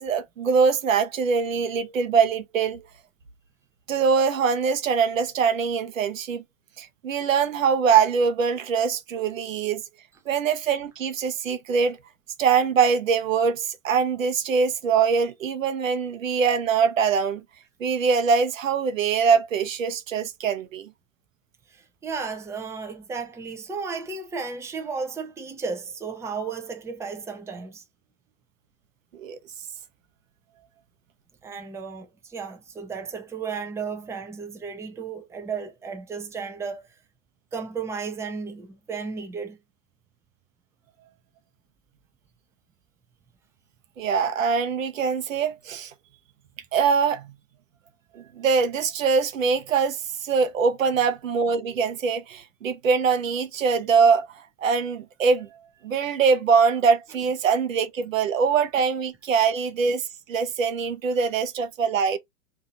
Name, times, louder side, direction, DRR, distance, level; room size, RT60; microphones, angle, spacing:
voice 1, 0.0-2.8 3.9-6.4 6.8-9.8 10.3-12.0 12.4-17.4 17.8-20.9 29.1-29.4 44.0-45.9 46.7-47.3 48.1-54.3 54.6-55.5 55.8-62.2, right 5 dB, 90° right, 0.8 m, -23 dB
voice 2, 21.7-27.8 31.4-36.8 37.5-39.6, right 5 dB, 5° right, 0.5 m, -34 dB
2.7 x 2.6 x 3.7 m
hypercardioid pair, 110°, 38 cm